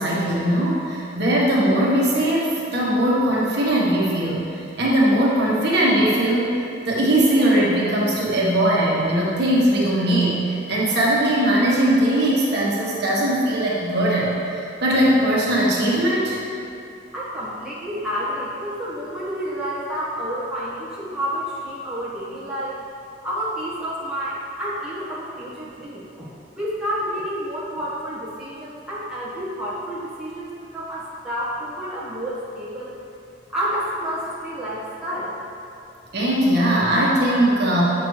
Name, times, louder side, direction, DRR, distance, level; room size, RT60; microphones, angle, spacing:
voice 1, 0.0-16.4 36.1-37.8, right 1 dB, 55° right, -6 dB, 1.3 m, -20 dB
voice 2, 17.1-22.8 23.2-26.3 26.6-32.9 33.5-35.4, equal, 5° right, -10 dB, 1.4 m, -29 dB
8.2 x 5.9 x 3.2 m, 2.6 s
head